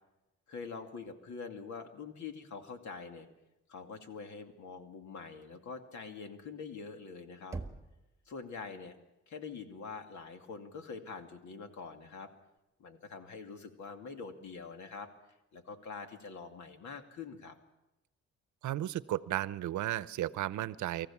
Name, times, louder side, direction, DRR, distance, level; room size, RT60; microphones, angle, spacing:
voice 1, 0.5-3.3 3.7-7.6 8.3-8.9 9.3-12.3 12.8-15.1 15.5-17.5, left 5 dB, 70° left, 6 dB, 2.5 m, -45 dB
Knock, 7.5-8.4, right 3 dB, 10° right, 1.7 m, -43 dB
voice 2, 18.6-21.1, right 14 dB, 75° right, 17 dB, 0.8 m, -34 dB
24.5 x 15.0 x 7.2 m, 0.97 s
cardioid pair, 90°, 30 cm